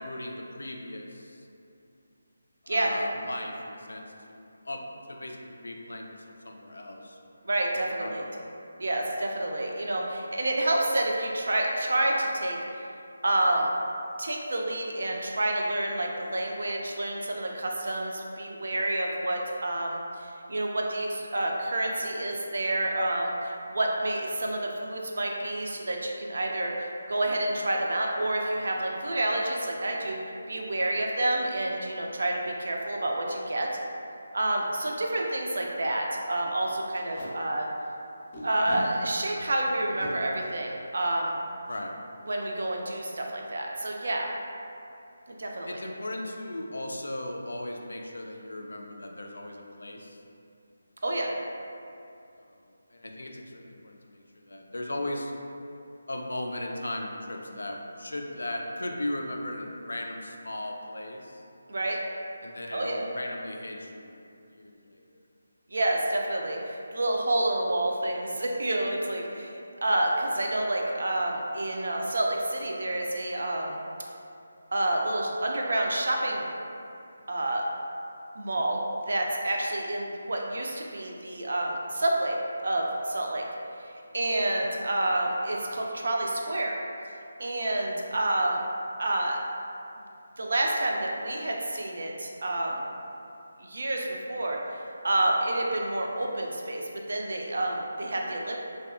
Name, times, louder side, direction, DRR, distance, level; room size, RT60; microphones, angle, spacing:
voice 1, 0.0-1.4 2.6-4.8 5.1-7.5 8.0-8.4 41.7-41.9 45.6-50.2 52.9-55.3 56.1-61.4 62.4-64.2 64.5-65.1, left 1 dB, 85° left, 1 dB, 0.3 m, -37 dB
voice 2, 7.4-8.2 8.8-12.6 13.2-13.7 14.2-30.2 30.5-33.7 34.3-37.7 38.4-41.4 42.3-44.3 45.4-45.8 51.0-51.3 61.7-62.0 62.7-63.0 65.7-73.8 74.7-76.5 77.3-77.6 78.4-83.4 84.1-86.8 87.4-88.6 89.0-89.4 90.4-92.8 93.6-98.6, right 1 dB, 70° right, 0 dB, 0.4 m, -29 dB
Packing tape duct tape, 34.2-34.4 34.9-35.0 35.2-35.4 35.7-35.9 36.9-37.3 38.3-38.8 39.8-40.1 41.7-41.8 42.2-42.4 42.6-43.0, left 1 dB, 35° left, 0.5 m, -42 dB
2.6 x 2.3 x 2.3 m, 2.6 s
figure-of-eight pair, 165°, 0 cm